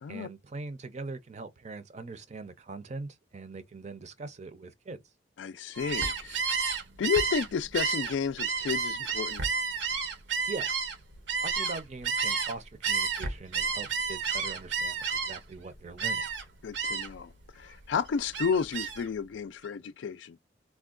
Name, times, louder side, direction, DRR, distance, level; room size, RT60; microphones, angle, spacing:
voice 1, 0.1-5.0 10.4-10.9 11.4-16.3, right 3 dB, 40° right, 0.5 m, -42 dB
voice 2, 5.4-6.5 7.0-9.5 16.6-20.4, left 6 dB, 80° left, 0.4 m, -32 dB
Gull seagull, 5.7-12.5 12.8-15.5 16.0-16.4 16.7-17.2 17.6-19.1, right 5 dB, 80° right, 0.7 m, -31 dB
3.4 x 2.2 x 2.4 m
head